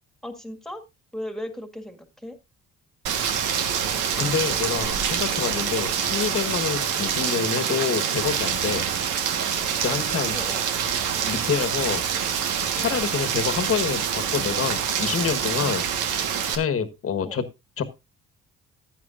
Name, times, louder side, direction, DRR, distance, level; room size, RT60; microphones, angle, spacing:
voice 1, 0.2-0.8 1.1-2.4 10.3-10.7 17.2-17.4, left 1 dB, ahead, 8 dB, 1.8 m, -36 dB
Rain, 3.1-16.6, right 8 dB, 90° right, 1.4 m, -26 dB
voice 2, 4.2-8.8 9.8-10.4 11.3-12.0 12.8-15.8 16.5-17.5 17.8-17.9, left 7 dB, 50° left, 13 dB, 1.3 m, -27 dB
15.0 x 9.2 x 2.5 m, 0.24 s
cardioid pair, 90°, 30 cm